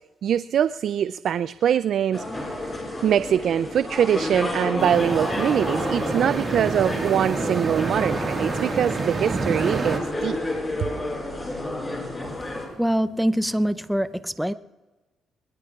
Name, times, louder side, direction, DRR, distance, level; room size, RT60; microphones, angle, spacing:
voice 1, 0.2-2.2 3.0-10.4, right 9 dB, 65° right, 14 dB, 0.3 m, -23 dB
sound 1, 2.1-12.7, left 1 dB, 20° left, 5.3 m, -31 dB
sound 2, 4.8-10.0, right 4 dB, 40° right, 1.8 m, -28 dB
voice 2, 12.8-14.5, equal, ahead, 13 dB, 0.6 m, -24 dB
21.5 x 20.5 x 2.4 m, 1.1 s
cardioid pair, 90°, 0 cm